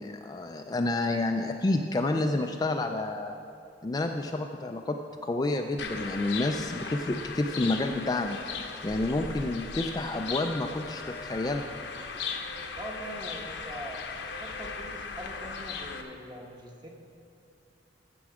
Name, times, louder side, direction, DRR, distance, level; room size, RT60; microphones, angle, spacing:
voice 1, 0.0-3.3 3.8-5.0 5.2-8.4 8.8-11.6, left 2 dB, 20° left, 4 dB, 0.4 m, -29 dB
sound 1, 5.8-16.0, left 5 dB, 70° left, 0.9 m, -38 dB
voice 2, 12.8-16.9, equal, 25° right, 0 dB, 1.2 m, -42 dB
14.5 x 6.1 x 4.9 m, 2.7 s
head